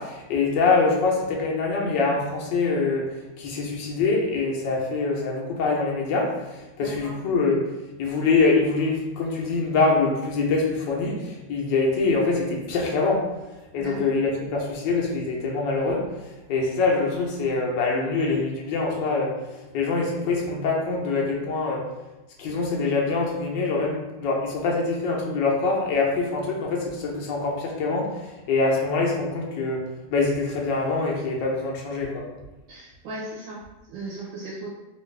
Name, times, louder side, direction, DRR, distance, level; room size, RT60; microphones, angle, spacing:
voice 1, 0.0-3.1 3.4-7.6 8.0-13.2 13.7-16.1 16.5-19.3 19.7-21.8 22.4-29.9 30.1-32.3, left 3 dB, 80° left, -1 dB, 1.4 m, -24 dB
voice 2, 6.8-7.1 13.8-14.1 32.7-33.6 33.9-34.7, right 2 dB, 85° right, -5 dB, 1.4 m, -36 dB
3.5 x 2.3 x 3.2 m, 1.1 s
omnidirectional pair, 1.9 m